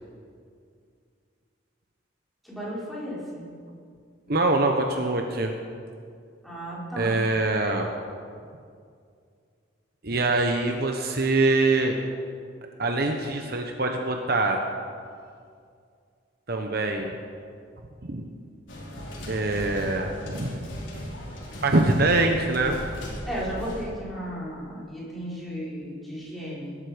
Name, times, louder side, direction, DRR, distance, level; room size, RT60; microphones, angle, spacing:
voice 1, 2.4-3.5 6.4-7.2 23.3-26.8, equal, ahead, -8 dB, 4.9 m, -34 dB
voice 2, 4.3-5.5 7.0-7.9 10.0-12.0 12.8-14.6 16.5-17.1 18.1-18.2 19.3-20.5 21.6-22.8, right 2 dB, 50° right, 3 dB, 1.1 m, -24 dB
sound 1, 18.7-23.8, equal, 70° left, 4.2 m, -37 dB
20.0 x 12.5 x 5.2 m, 2.2 s
head